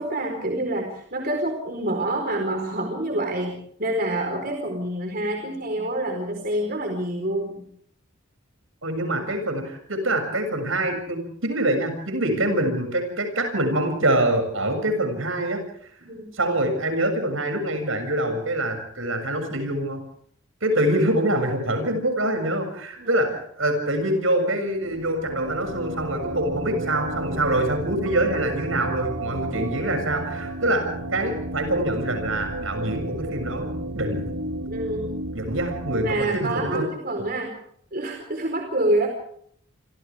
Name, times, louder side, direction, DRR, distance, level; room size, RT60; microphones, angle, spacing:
voice 1, 0.0-7.6 16.0-16.3 20.7-20.8 23.0-23.2 34.7-35.2 36.0-37.5 37.9-39.1, right 1 dB, 45° right, 3 dB, 4.4 m, -27 dB
voice 2, 8.8-15.6 16.3-20.0 20.6-34.2 35.3-36.8, right 1 dB, 70° right, 7 dB, 7.2 m, -25 dB
sound 1, 24.7-36.2, right 1 dB, 90° right, 1.7 m, -32 dB
29.0 x 26.0 x 3.6 m, 0.63 s
head